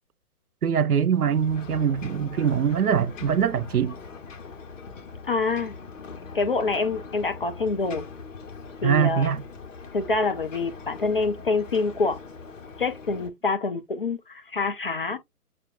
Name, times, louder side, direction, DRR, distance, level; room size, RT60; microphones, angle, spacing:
voice 1, 0.6-4.0 8.8-9.4, right 7 dB, 75° right, 0.8 m, -23 dB
Ocean, 1.0-13.3, left 4 dB, 55° left, 1.3 m, -42 dB
voice 2, 5.2-5.7 6.3-8.1 8.8-9.3 9.9-12.2 12.8-15.2, left 3 dB, 40° left, 0.5 m, -26 dB
6.6 x 2.5 x 2.6 m
figure-of-eight pair, 140°, 45 cm